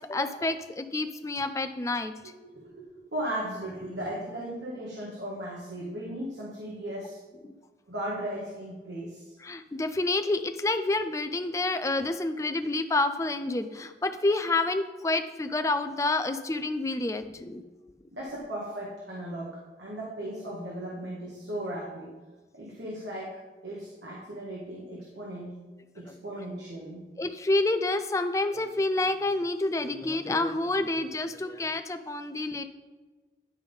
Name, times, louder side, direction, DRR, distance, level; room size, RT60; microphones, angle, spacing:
voice 1, 0.1-2.1 7.4-7.5 9.4-17.6 26.1-26.2 27.2-32.6, left 2 dB, 15° left, 9 dB, 0.3 m, -28 dB
voice 2, 2.2-7.2 7.9-9.3 18.1-22.1 22.5-23.3 23.6-25.5 25.9-27.1, right 1 dB, 80° right, -5 dB, 1.4 m, -37 dB
10.0 x 3.6 x 5.3 m, 1.2 s
head